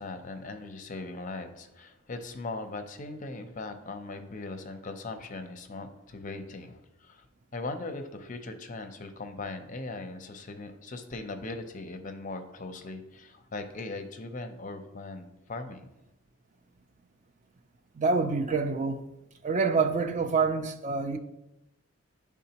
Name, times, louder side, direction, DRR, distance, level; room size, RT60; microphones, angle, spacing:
voice 1, 0.0-7.3 7.5-15.9, left 3 dB, 35° left, 0.5 m, -39 dB
voice 2, 18.0-19.0 19.4-21.2, right 4 dB, 35° right, 0.3 m, -26 dB
10.5 x 3.6 x 2.9 m
head